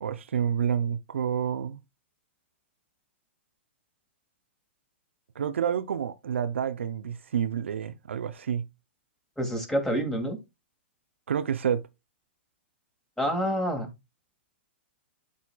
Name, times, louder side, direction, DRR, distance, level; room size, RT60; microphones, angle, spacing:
voice 1, 0.0-1.8 5.4-8.6 11.3-11.9, right 8 dB, 80° right, 0.6 m, -29 dB
voice 2, 9.4-10.4 13.2-13.9, equal, 5° left, 2.2 m, -27 dB
12.5 x 4.2 x 2.3 m
hypercardioid pair, 115°, 7 cm